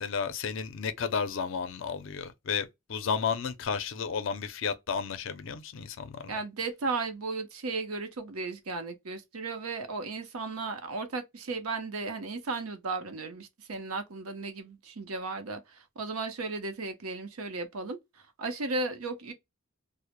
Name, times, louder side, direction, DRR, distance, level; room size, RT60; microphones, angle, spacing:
voice 1, 0.0-6.3, left 6 dB, 60° left, 0.4 m, -32 dB
voice 2, 6.3-18.0 18.4-19.3, right 3 dB, 85° right, 0.6 m, -35 dB
2.1 x 2.0 x 2.9 m
head